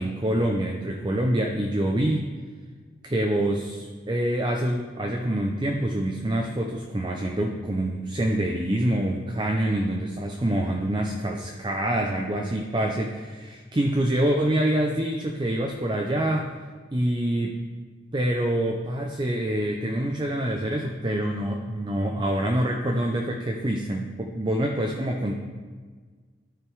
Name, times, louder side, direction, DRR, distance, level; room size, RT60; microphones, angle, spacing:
voice 1, 0.0-2.3 3.0-16.5 16.9-17.6 18.1-25.4, right 1 dB, 25° right, 2 dB, 0.6 m, -26 dB
12.5 x 5.1 x 4.7 m, 1.5 s
head